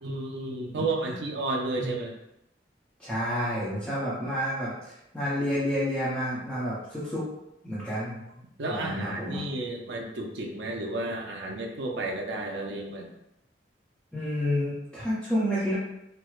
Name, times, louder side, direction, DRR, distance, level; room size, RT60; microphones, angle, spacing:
voice 1, 0.0-2.1 8.6-13.1, right 2 dB, 75° right, 1 dB, 0.5 m, -32 dB
voice 2, 3.0-7.3 7.6-8.2 8.7-9.4 14.1-15.7, equal, 5° left, -11 dB, 0.7 m, -29 dB
4.5 x 2.0 x 2.3 m, 0.83 s
head